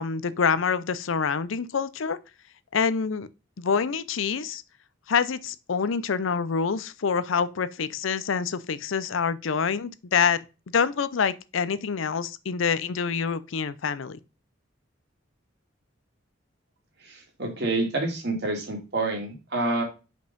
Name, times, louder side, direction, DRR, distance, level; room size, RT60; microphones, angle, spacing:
voice 1, 0.0-2.2 2.7-3.3 3.6-4.6 5.1-10.4 10.7-14.2, left 6 dB, 80° left, 0.6 m, -26 dB
voice 2, 17.0-19.8, right 2 dB, 55° right, 2.5 m, -28 dB
5.3 x 5.2 x 5.2 m
head